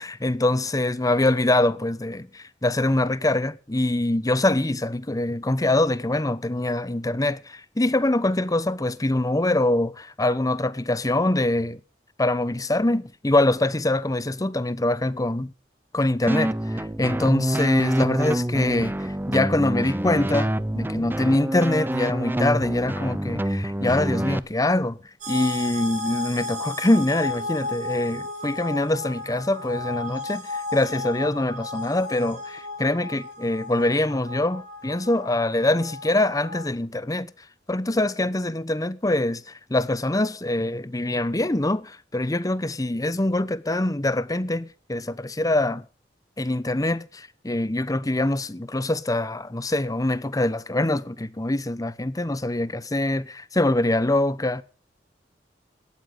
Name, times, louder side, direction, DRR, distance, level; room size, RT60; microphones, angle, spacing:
voice 1, 0.0-11.8 12.2-15.5 15.9-25.0 25.3-37.3 37.7-45.8 46.4-54.6, left 1 dB, 20° left, 0.9 m, -24 dB
sound 1, 16.3-24.4, right 1 dB, 10° right, 0.6 m, -27 dB
sound 2, 25.2-36.7, left 2 dB, 45° right, 6.3 m, -34 dB
17.5 x 13.0 x 3.8 m
head